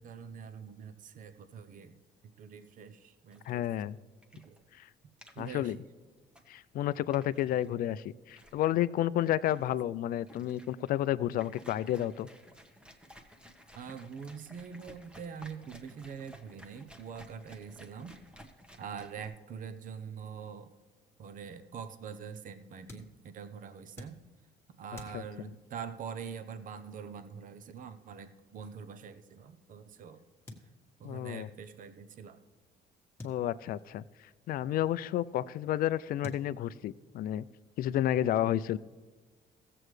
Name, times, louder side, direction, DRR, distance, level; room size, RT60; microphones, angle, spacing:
voice 1, 0.0-2.0 2.2-3.6 4.3-4.6 5.0-5.9 9.5-9.7 13.7-18.1 18.8-20.7 21.2-24.2 24.8-30.2 30.6-30.7 31.0-32.4, right 6 dB, 50° right, 10 dB, 0.8 m, -44 dB
sound 1, 3.3-19.3, equal, 5° right, 1.0 m, -56 dB
voice 2, 3.5-4.0 4.8-4.9 5.4-5.8 6.5-12.3 25.1-25.2 31.0-31.5 33.2-34.0 34.5-37.4 37.8-38.8, left 12 dB, 60° left, 17 dB, 0.4 m, -31 dB
sound 2, 22.8-29.8 30.5-31.2 31.5-31.6 31.8-31.9 33.2-34.3 35.5-35.6 36.2-37.1, left 1 dB, 15° left, 1.5 m, -52 dB
16.0 x 7.7 x 3.2 m, 1.4 s
cardioid pair, 110°, 17 cm